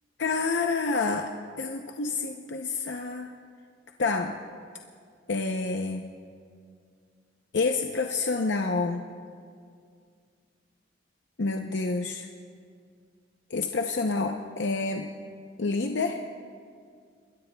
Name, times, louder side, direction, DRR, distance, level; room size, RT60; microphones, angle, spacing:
voice 1, 0.2-1.3 1.6-3.3 4.0-4.4 5.3-6.0 7.5-9.0 11.4-12.3 13.5-15.1 15.6-16.2, left 3 dB, 65° left, 3 dB, 0.7 m, -28 dB
27.0 x 21.0 x 2.3 m, 2.2 s
head